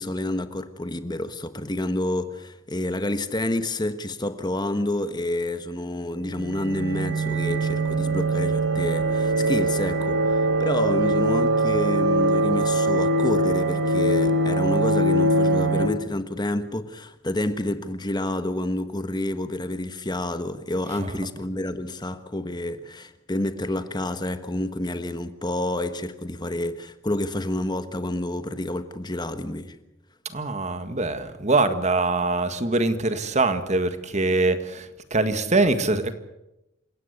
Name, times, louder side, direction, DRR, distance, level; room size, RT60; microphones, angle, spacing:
voice 1, 0.0-10.3 10.6-29.7, left 1 dB, 20° left, 1.3 m, -29 dB
sound 1, 6.3-15.9, right 1 dB, 70° right, 4.3 m, -22 dB
voice 2, 30.3-34.9 35.1-36.2, right 2 dB, 35° right, 1.8 m, -23 dB
28.0 x 17.0 x 8.2 m
head